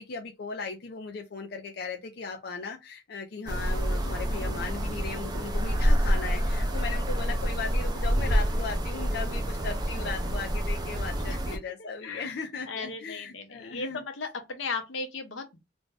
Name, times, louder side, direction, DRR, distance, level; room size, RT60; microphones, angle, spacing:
voice 1, 0.0-14.0, left 4 dB, 55° left, 0.4 m, -37 dB
sound 1, 3.5-11.6, equal, 20° right, 0.4 m, -27 dB
voice 2, 11.8-12.4 12.7-15.7, left 4 dB, 85° left, 0.7 m, -36 dB
2.5 x 2.1 x 3.2 m
head